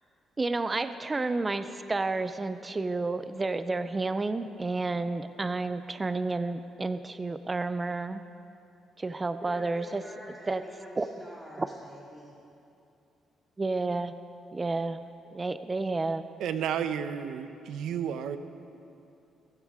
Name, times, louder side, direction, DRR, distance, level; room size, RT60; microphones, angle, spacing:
voice 1, 0.4-8.2 9.0-10.0 10.5-10.6 11.0-11.1 11.6-11.7 13.6-14.1 14.5-16.3, right 3 dB, 25° right, 11 dB, 0.5 m, -31 dB
voice 2, 9.4-12.3, equal, 10° right, -5 dB, 2.2 m, -47 dB
voice 3, 16.4-18.4, right 8 dB, 80° right, 10 dB, 0.7 m, -32 dB
16.0 x 15.5 x 3.6 m, 2.6 s
cardioid pair, 90°, 0 cm